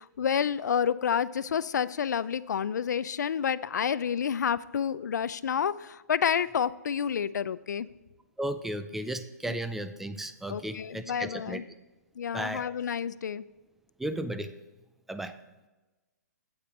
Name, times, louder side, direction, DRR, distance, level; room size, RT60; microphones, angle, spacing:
voice 1, 0.0-7.9 9.5-9.6 10.5-11.6 12.2-13.4, left 7 dB, 80° left, 17 dB, 0.5 m, -29 dB
voice 2, 8.4-11.6 12.3-12.6 14.0-14.5 15.1-15.3, right 1 dB, 5° right, 10 dB, 0.4 m, -34 dB
8.8 x 8.5 x 4.2 m, 1.1 s
hypercardioid pair, 150°, 9 cm